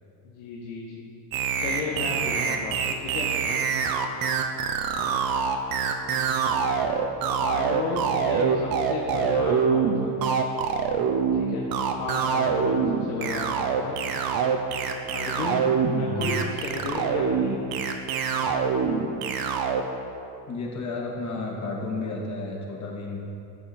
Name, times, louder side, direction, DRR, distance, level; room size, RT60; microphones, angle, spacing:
voice 1, 0.2-1.1 1.6-3.3 7.4-10.1 11.3-11.7 12.0-13.9 15.1-17.6, left 4 dB, 80° left, -2 dB, 1.2 m, -34 dB
sound 1, 1.3-19.8, right 6 dB, 50° right, 0.9 m, -25 dB
voice 2, 15.9-16.3 20.5-23.2, left 3 dB, 40° left, -2 dB, 2.0 m, -32 dB
10.0 x 6.4 x 4.3 m, 2.7 s
supercardioid pair, 100°, 46 cm